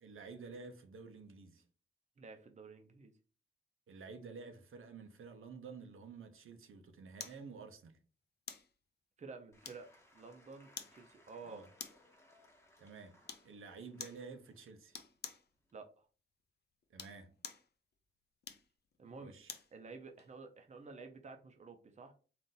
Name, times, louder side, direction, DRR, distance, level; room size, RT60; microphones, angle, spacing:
voice 1, 0.0-1.6 3.9-8.0 11.4-11.7 12.8-15.0 16.9-17.3 19.2-19.6, right 4 dB, 80° right, 0.7 m, -51 dB
voice 2, 2.2-3.1 9.2-9.9 10.1-11.6 15.7-16.1 19.0-19.3 19.7-22.1, right 4 dB, 35° right, 0.6 m, -51 dB
sound 1, 7.2-7.4 8.5-8.7 9.6-10.1 10.8-11.0 11.8-12.1 13.3-13.5 14.0-14.2 14.9-15.5 16.8-17.7 18.4-19.7 20.2-20.3, left 6 dB, 50° left, 0.5 m, -48 dB
Applause / Crowd, 9.5-15.8, left 1 dB, 15° left, 0.9 m, -67 dB
4.0 x 2.5 x 3.8 m
wide cardioid pair, 160°, 21 cm